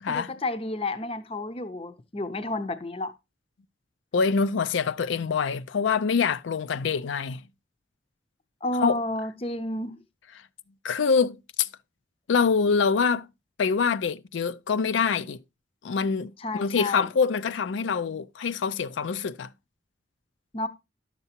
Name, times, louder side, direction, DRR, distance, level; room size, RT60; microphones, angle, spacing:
voice 1, 0.1-3.1 8.6-10.0 16.4-17.1 20.5-20.7, left 2 dB, 30° left, 0.6 m, -31 dB
voice 2, 4.1-7.4 8.8-9.0 10.8-11.7 12.3-13.3 13.6-15.4 15.8-19.5, left 5 dB, 85° left, 0.4 m, -25 dB
11.0 x 6.8 x 2.8 m
head